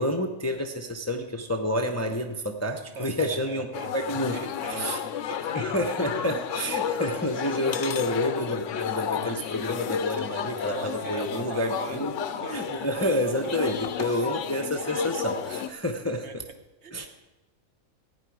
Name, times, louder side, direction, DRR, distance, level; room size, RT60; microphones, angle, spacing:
voice 1, 0.0-4.4 4.7-5.0 5.5-12.1 12.5-16.4 16.9-17.1, left 1 dB, 15° left, 4 dB, 0.7 m, -29 dB
voice 2, 2.9-4.9 5.3-5.7 10.6-12.7 13.4-13.7 14.1-14.2 16.2-16.4 16.8-17.1, right 4 dB, 55° right, 6 dB, 1.1 m, -41 dB
sound 1, 3.7-15.7, left 8 dB, 65° left, 0.9 m, -32 dB
15.5 x 9.7 x 4.7 m, 1.1 s
omnidirectional pair, 1.5 m